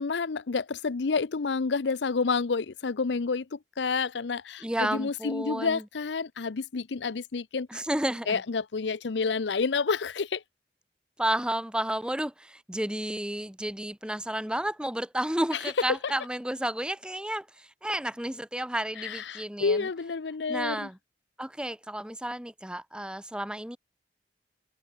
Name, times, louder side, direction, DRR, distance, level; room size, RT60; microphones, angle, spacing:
voice 1, 0.0-7.7 8.3-10.4 19.0-20.9, left 4 dB, 85° left, 0.6 m, -29 dB
voice 2, 4.6-5.8 7.7-8.4 11.2-19.9 20.5-21.0 21.4-23.8, right 1 dB, 5° right, 1.4 m, -31 dB
open air
head